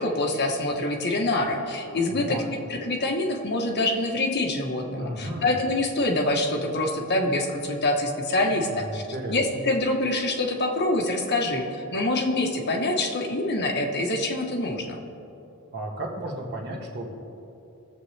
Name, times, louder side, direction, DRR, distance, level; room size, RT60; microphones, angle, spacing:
voice 1, 0.0-2.4 2.7-9.0 9.3-11.6 11.9-15.0, left 2 dB, 50° left, 1 dB, 1.2 m, -25 dB
voice 2, 2.1-2.5 5.0-5.5 8.7-9.6 15.7-17.1, right 1 dB, 50° right, -1 dB, 1.8 m, -34 dB
20.5 x 7.5 x 3.3 m, 2.8 s
head